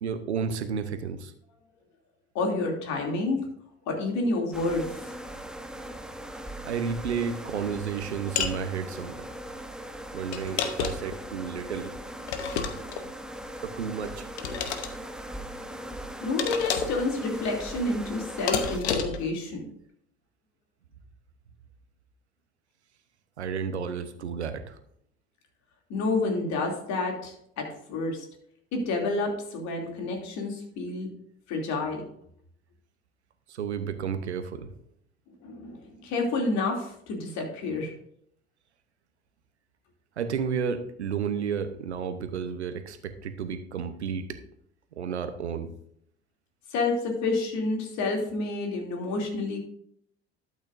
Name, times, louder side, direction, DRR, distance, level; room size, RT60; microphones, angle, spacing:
voice 1, 0.0-1.3 6.6-9.3 10.1-11.9 13.6-14.3 23.4-24.8 33.5-34.7 40.2-44.4 45.0-45.7, right 6 dB, 85° right, 10 dB, 0.9 m, -32 dB
voice 2, 2.3-3.5 3.9-5.0 16.2-19.6 25.9-28.3 28.7-31.1 31.5-32.1 35.4-37.9 46.7-49.6, left 3 dB, 55° left, 1 dB, 2.9 m, -29 dB
sound 1, 4.5-18.8, equal, ahead, 1.1 m, -40 dB
sound 2, 8.4-8.6 10.3-11.2 12.3-13.1 14.4-14.9 16.4-17.0 18.5-19.3, left 6 dB, 80° left, 1.0 m, -30 dB
12.5 x 8.5 x 2.6 m, 0.70 s
hypercardioid pair, 65°, 33 cm